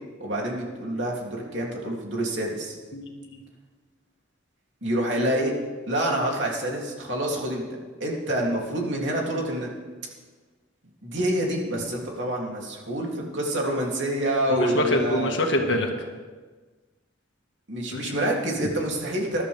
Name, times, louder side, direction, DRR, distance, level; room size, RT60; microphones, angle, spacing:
voice 1, 0.2-2.8 4.8-5.5 5.9-7.7 8.0-9.7 11.0-15.4 17.7-19.4, right 1 dB, 65° right, -1 dB, 3.0 m, -27 dB
voice 2, 2.9-3.4 14.5-15.9 17.9-18.1, left 1 dB, 65° left, 2 dB, 1.8 m, -25 dB
21.0 x 12.0 x 3.5 m, 1.4 s
head